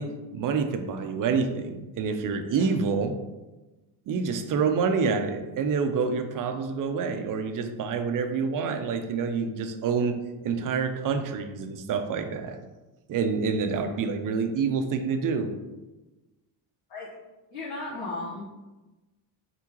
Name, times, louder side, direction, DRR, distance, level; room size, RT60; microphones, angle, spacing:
voice 1, 0.0-3.1 4.1-12.6 13.1-15.5, right 5 dB, 45° right, 7 dB, 0.5 m, -27 dB
voice 2, 17.5-18.5, left 2 dB, 65° left, -9 dB, 1.4 m, -35 dB
3.7 x 3.6 x 3.0 m, 1.1 s
cardioid pair, 120°, 47 cm